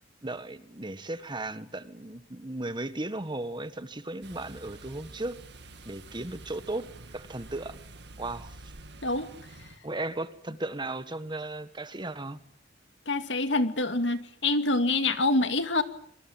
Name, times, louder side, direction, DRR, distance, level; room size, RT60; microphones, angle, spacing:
voice 1, 0.2-5.4 5.8-7.8 8.2-8.7 9.8-12.4, right 2 dB, 25° right, 12 dB, 1.7 m, -36 dB
sound 1, 4.2-9.8, right 2 dB, 65° right, 2.0 m, -48 dB
voice 2, 9.0-9.3 13.1-15.8, left 2 dB, 70° left, 9 dB, 2.4 m, -26 dB
26.5 x 24.0 x 9.1 m, 0.66 s
head